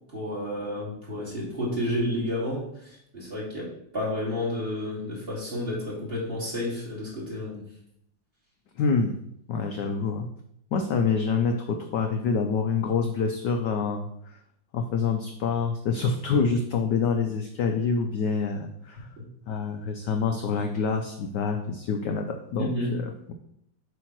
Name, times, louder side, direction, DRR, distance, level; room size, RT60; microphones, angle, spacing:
voice 1, 0.1-3.7 3.9-7.6 9.7-9.8 22.7-22.9, left 1 dB, 25° right, -5 dB, 2.8 m, -31 dB
voice 2, 8.8-9.1 9.5-10.3 10.7-14.1 14.7-19.1 19.5-23.3, left 5 dB, 70° left, 5 dB, 1.0 m, -26 dB
7.7 x 3.6 x 6.1 m, 0.74 s
omnidirectional pair, 2.4 m